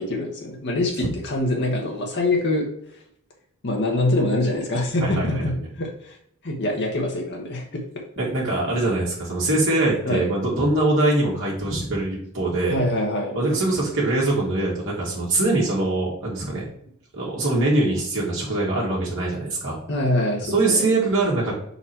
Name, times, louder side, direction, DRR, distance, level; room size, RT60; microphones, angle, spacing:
voice 1, 0.0-2.7 3.6-6.2 6.4-7.8 10.1-10.3 12.7-13.4 19.9-20.8, left 1 dB, 50° left, 0 dB, 1.1 m, -24 dB
voice 2, 5.0-5.6 8.2-12.8 13.3-16.7 17.1-19.8 20.4-21.6, right 2 dB, 60° right, -4 dB, 1.8 m, -23 dB
5.7 x 4.1 x 4.4 m, 0.70 s
head